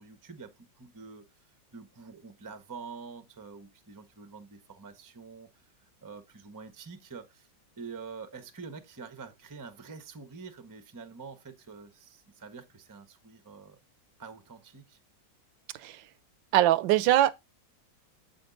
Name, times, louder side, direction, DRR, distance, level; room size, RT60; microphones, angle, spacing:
voice 1, 0.0-1.3 1.7-7.5 7.8-13.8 14.2-15.0, right 5 dB, 25° right, 0.4 m, -46 dB
voice 2, 16.5-17.3, right 13 dB, 80° right, 1.2 m, -22 dB
7.3 x 5.2 x 3.8 m
omnidirectional pair, 2.1 m